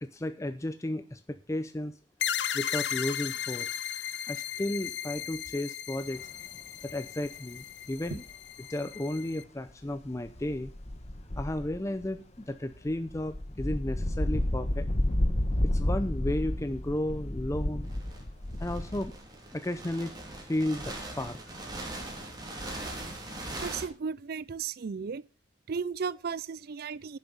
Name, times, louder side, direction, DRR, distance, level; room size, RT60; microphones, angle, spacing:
voice 1, 0.0-1.9 2.5-3.7 4.3-6.2 6.8-8.2 8.7-10.7 11.4-14.9 15.6-17.9 18.6-19.1 19.5-20.1 20.5-21.4, left 1 dB, 15° left, 0.6 m, -33 dB
sound 1, 2.2-9.4, left 10 dB, 65° left, 0.6 m, -36 dB
sound 2, 6.5-6.6 8.1-8.3 10.3-12.1 12.7-19.1, left 1 dB, 35° left, 1.1 m, -31 dB
sound 3, 17.8-23.9, right 2 dB, 25° right, 3.1 m, -41 dB
voice 2, 23.6-25.2 25.7-27.2, right 6 dB, 55° right, 0.4 m, -35 dB
10.0 x 7.5 x 6.9 m
head